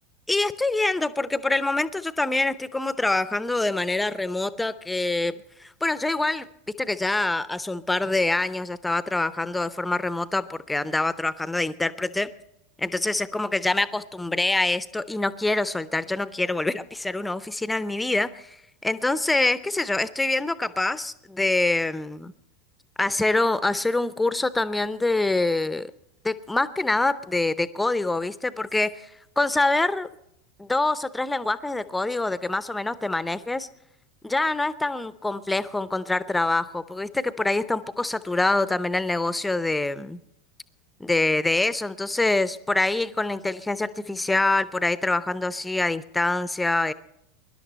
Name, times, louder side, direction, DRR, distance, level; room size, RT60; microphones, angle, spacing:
voice 1, 0.3-6.5 6.8-12.3 12.8-18.6 18.8-22.3 23.0-25.9 26.2-29.1 29.4-30.1 30.6-33.7 34.2-40.2 41.0-46.9, left 2 dB, 5° left, 16 dB, 0.8 m, -25 dB
24.0 x 11.5 x 4.2 m, 0.80 s
figure-of-eight pair, 85°, 0 cm